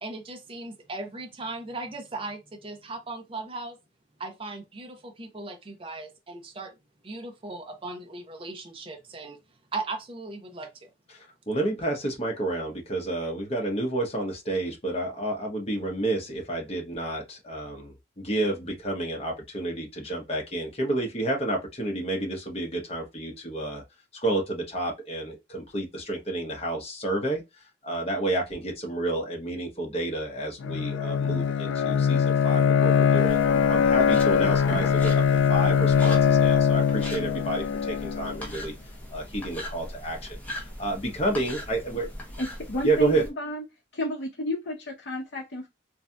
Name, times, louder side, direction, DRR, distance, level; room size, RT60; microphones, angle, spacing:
voice 1, 0.0-3.8 4.2-6.7 7.0-9.4 9.7-10.9, right 3 dB, 30° right, 0.6 m, -37 dB
voice 2, 11.5-23.8 24.2-27.4 27.8-35.2 35.5-38.7 39.1-40.4 40.8-42.1 42.8-43.2, right 2 dB, 35° left, 1.0 m, -30 dB
Bowed string instrument, 30.6-38.4, left 7 dB, 85° left, 0.3 m, -22 dB
sound 1, 33.3-43.3, left 1 dB, 10° left, 0.8 m, -40 dB
voice 3, 42.4-43.6 43.9-45.7, left 1 dB, 60° left, 0.7 m, -31 dB
3.2 x 2.7 x 2.2 m
head